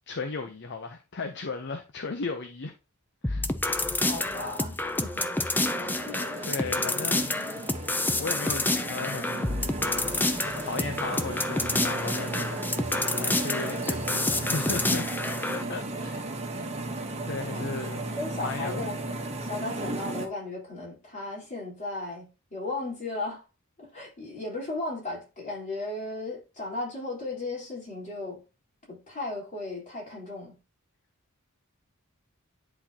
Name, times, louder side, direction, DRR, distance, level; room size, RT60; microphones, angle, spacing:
voice 1, 0.1-2.7 3.2-3.5 6.4-7.4 8.2-9.5 10.6-15.1 15.5-16.2 17.2-18.8, left 4 dB, 55° left, 0.7 m, -36 dB
sound 1, 3.2-15.6, left 2 dB, 10° left, 0.5 m, -29 dB
voice 2, 4.1-5.6 6.1-6.4 17.5-17.7 18.2-23.4 23.8-28.4 28.9-30.6, left 2 dB, 35° left, 4.0 m, -36 dB
sound 2, 5.6-20.3, right 2 dB, 30° right, 1.2 m, -35 dB
10.0 x 4.3 x 2.9 m
head